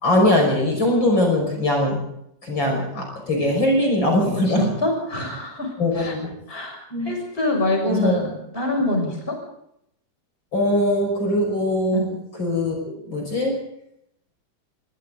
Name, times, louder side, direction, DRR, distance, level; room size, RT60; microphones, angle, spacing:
voice 1, 0.0-2.0 2.4-4.7 5.8-6.3 6.9-7.1 7.8-8.2 10.5-13.6, left 1 dB, 40° left, 1 dB, 6.3 m, -21 dB
voice 2, 4.6-6.1 6.5-9.3 11.9-12.1, left 1 dB, 20° left, 2 dB, 6.6 m, -25 dB
28.0 x 24.5 x 3.9 m, 0.75 s
omnidirectional pair, 3.3 m